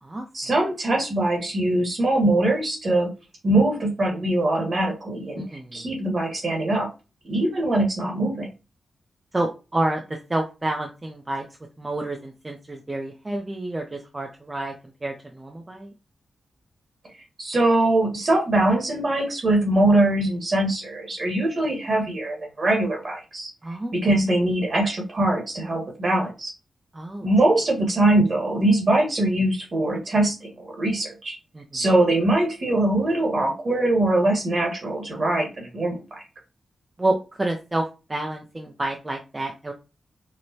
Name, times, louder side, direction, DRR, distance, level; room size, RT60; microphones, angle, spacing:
voice 1, 0.3-3.1 3.4-5.4 5.7-6.9 7.2-8.5 17.4-23.5 23.9-26.5 27.2-31.4 31.7-36.2, right 1 dB, 45° right, 0 dB, 1.4 m, -22 dB
voice 2, 5.3-5.9 9.3-11.5 11.8-15.9 23.6-23.9 26.9-27.3 31.5-31.8 37.0-39.7, right 2 dB, 20° right, 2 dB, 0.5 m, -29 dB
4.6 x 2.1 x 2.7 m, 0.29 s
wide cardioid pair, 115°, 0 cm